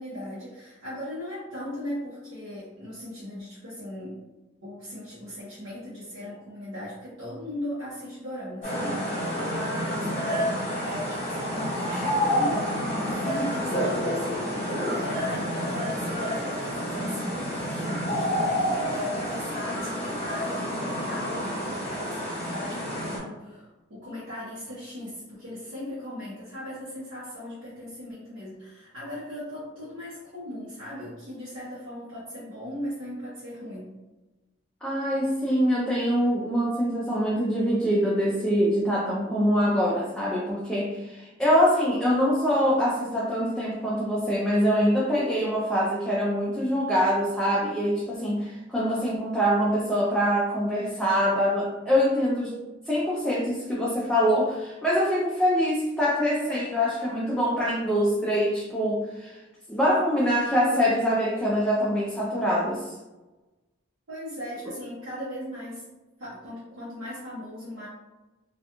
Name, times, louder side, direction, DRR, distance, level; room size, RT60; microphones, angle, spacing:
voice 1, 0.0-4.2 4.6-12.7 13.0-34.0 64.1-65.8 66.2-67.9, left 1 dB, 75° right, -10 dB, 0.8 m, -38 dB
sound 1, 8.6-23.2, equal, 30° left, 1.0 m, -29 dB
voice 2, 34.8-52.6 52.9-59.4 59.7-62.9, equal, 5° left, -7 dB, 0.3 m, -24 dB
2.4 x 2.2 x 2.8 m, 1.1 s
head